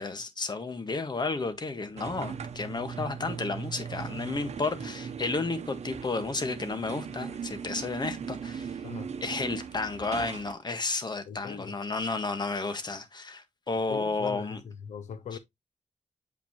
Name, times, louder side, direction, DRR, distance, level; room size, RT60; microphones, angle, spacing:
voice 1, 0.0-8.8 9.2-14.6 15.3-15.4, left 3 dB, 40° left, 1.5 m, -32 dB
sound 1, 2.0-10.5, right 6 dB, 70° right, 0.9 m, -39 dB
voice 2, 11.3-11.7 13.9-14.6 14.9-15.4, left 7 dB, 85° left, 0.5 m, -40 dB
8.0 x 5.1 x 3.0 m
wide cardioid pair, 100°, 12 cm